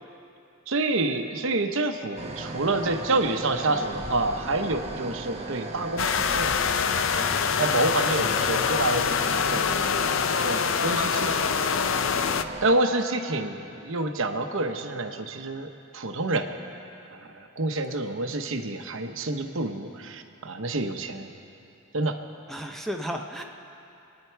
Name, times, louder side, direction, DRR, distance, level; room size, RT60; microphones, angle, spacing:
voice 1, 0.7-6.6 7.6-10.1 10.4-11.4 12.6-16.5 17.1-21.3 21.9-22.2, right 2 dB, 65° right, 5 dB, 0.9 m, -28 dB
sound 1, 2.2-12.7, right 2 dB, 30° right, 0.9 m, -37 dB
sound 2, 6.0-12.4, left 6 dB, 65° left, 0.5 m, -25 dB
voice 2, 22.5-23.4, equal, ahead, 2 dB, 0.7 m, -35 dB
27.0 x 9.8 x 4.6 m, 2.8 s
head